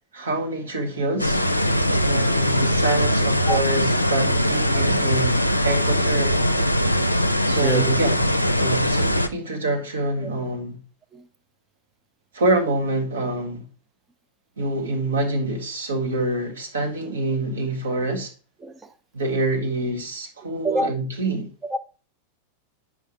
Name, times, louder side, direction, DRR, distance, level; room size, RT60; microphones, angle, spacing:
voice 1, 0.1-1.4 2.1-6.3 7.5-8.2 8.6-10.8 12.3-13.6 14.6-18.3 19.1-21.5, right 2 dB, 70° right, 1.3 m, -26 dB
sound 1, 1.2-9.3, equal, 90° left, 0.5 m, -21 dB
voice 2, 4.3-4.9 7.6-7.9 10.2-10.3 11.1-11.2 18.6-18.8 20.6-20.9 21.6-21.8, right 2 dB, 15° right, 0.6 m, -27 dB
7.8 x 5.7 x 3.0 m
figure-of-eight pair, 90°, 0 cm